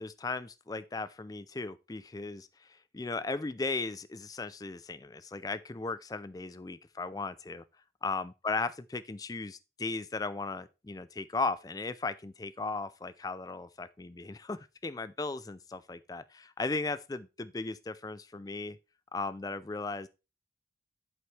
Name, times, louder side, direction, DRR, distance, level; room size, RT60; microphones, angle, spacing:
voice 1, 0.0-2.7 2.9-7.6 8.0-18.8 19.1-20.1, left 3 dB, 20° left, 0.4 m, -36 dB
8.0 x 7.9 x 3.2 m
head